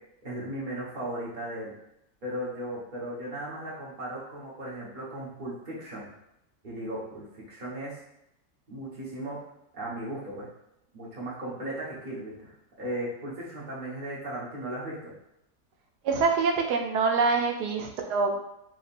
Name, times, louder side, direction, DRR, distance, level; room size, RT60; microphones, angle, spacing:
voice 1, 0.2-1.7 2.2-6.1 6.6-7.9 8.7-9.4 9.7-10.5 10.9-15.1, right 1 dB, 30° right, -7 dB, 1.3 m, -36 dB
voice 2, 16.0-18.4, right 4 dB, 90° right, 3 dB, 1.2 m, -25 dB
5.1 x 3.1 x 2.6 m, 0.84 s
omnidirectional pair, 1.7 m